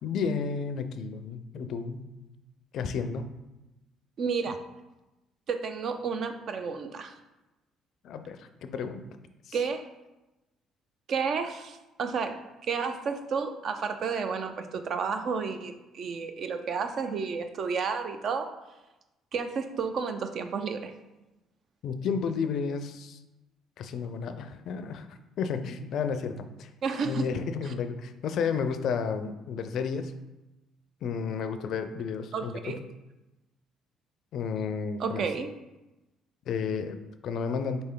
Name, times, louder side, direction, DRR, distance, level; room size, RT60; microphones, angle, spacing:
voice 1, 0.0-2.1 2.7-3.3 8.0-9.0 9.5-9.6 21.8-23.2 23.8-26.7 27.0-30.2 31.0-32.8 34.3-35.2 36.5-37.8, left 6 dB, 65° left, 9 dB, 0.4 m, -32 dB
voice 2, 4.2-4.6 5.5-7.1 9.5-9.8 11.1-12.4 12.7-18.5 19.3-20.9 26.8-27.3 27.6-27.7 32.3-32.8 35.0-35.5, right 5 dB, 60° right, 7 dB, 0.5 m, -31 dB
4.0 x 3.4 x 3.7 m, 1.0 s
supercardioid pair, 70°, 0 cm